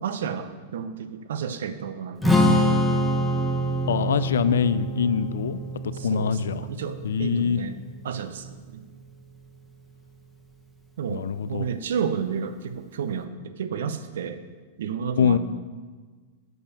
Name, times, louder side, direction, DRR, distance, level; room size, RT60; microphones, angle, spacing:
voice 1, 0.0-2.4 5.9-7.8 8.0-8.8 11.0-14.4 14.8-15.4, right 7 dB, 80° right, 10 dB, 0.6 m, -31 dB
Strum, 2.2-8.5, equal, 5° left, 1.1 m, -25 dB
voice 2, 3.9-5.6 5.8-6.7 7.0-7.6 11.1-11.7 15.2-15.4, left 7 dB, 85° left, 15 dB, 0.4 m, -24 dB
8.0 x 4.9 x 7.1 m, 1.4 s
hypercardioid pair, 115°, 0 cm